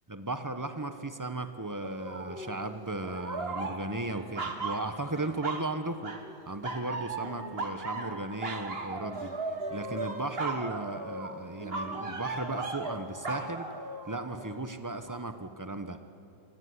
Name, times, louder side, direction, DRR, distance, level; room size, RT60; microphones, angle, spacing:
voice 1, 0.1-6.1 6.5-13.7 14.0-16.0, right 2 dB, 15° right, 8 dB, 0.8 m, -36 dB
sound 1, 1.8-2.6 3.0-5.7 6.0-6.4 6.6-14.6 15.1-15.2, right 3 dB, 30° right, 1.9 m, -37 dB
26.0 x 22.0 x 9.8 m, 2.7 s
omnidirectional pair, 2.2 m